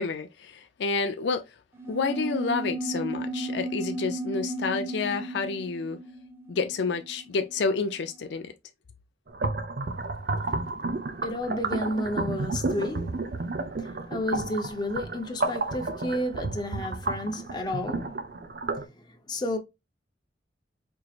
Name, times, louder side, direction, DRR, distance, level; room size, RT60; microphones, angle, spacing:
voice 1, 0.0-1.5 1.9-6.0 6.5-8.5, left 4 dB, 70° left, 0.4 m, -29 dB
sound 1, 1.8-7.7, right 1 dB, 15° right, 0.6 m, -34 dB
sound 2, 9.3-18.9, right 3 dB, 55° right, 0.6 m, -31 dB
voice 2, 10.4-10.8 11.2-13.5 13.8-18.2 18.9-19.6, left 1 dB, 20° left, 0.8 m, -32 dB
4.5 x 2.9 x 2.4 m
head